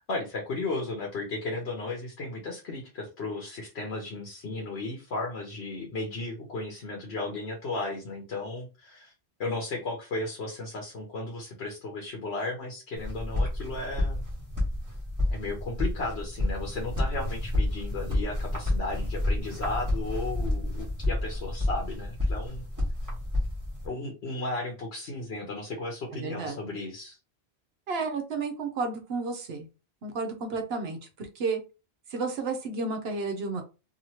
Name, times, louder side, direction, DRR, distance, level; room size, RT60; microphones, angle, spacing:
voice 1, 0.0-9.1 9.4-14.2 15.3-22.6 23.8-27.2, left 2 dB, 70° left, 1 dB, 1.1 m, -35 dB
sound 1, 13.0-23.9, left 1 dB, 15° right, 1.3 m, -30 dB
voice 2, 26.1-26.6 27.9-29.7 30.0-31.6 32.1-33.6, right 4 dB, 70° right, 5 dB, 1.0 m, -32 dB
3.0 x 2.8 x 2.8 m, 0.30 s
omnidirectional pair, 1.1 m